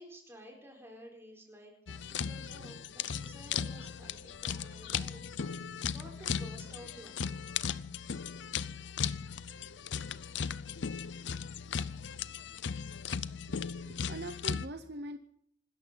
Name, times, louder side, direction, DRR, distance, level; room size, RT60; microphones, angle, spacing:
voice 1, 0.0-7.5, equal, 15° right, 0 dB, 4.4 m, -53 dB
sound 1, 1.9-14.7, left 7 dB, 65° left, 0.6 m, -37 dB
voice 2, 13.6-15.2, right 1 dB, 55° right, 9 dB, 0.8 m, -42 dB
25.5 x 13.5 x 4.0 m, 0.68 s
head